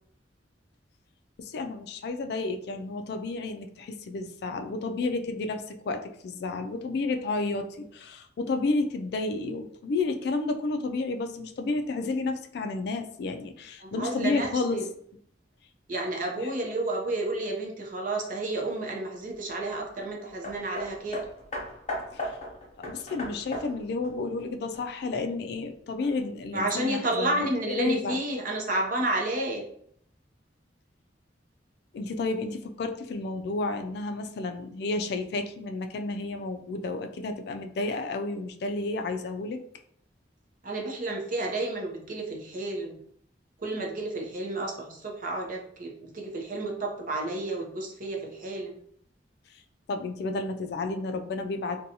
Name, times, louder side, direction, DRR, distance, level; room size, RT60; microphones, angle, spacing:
voice 1, 1.4-14.9 16.4-16.5 22.1-22.3 22.9-28.2 31.9-39.6 49.9-51.8, left 3 dB, 60° left, 7 dB, 0.3 m, -31 dB
voice 2, 13.8-14.9 15.9-21.2 26.5-29.6 40.6-43.0 43.6-48.8, right 2 dB, 45° right, 0 dB, 0.6 m, -31 dB
Hammer, 20.4-25.2 26.0-26.1, left 1 dB, 40° left, 0.7 m, -37 dB
2.6 x 2.2 x 2.7 m, 0.65 s
head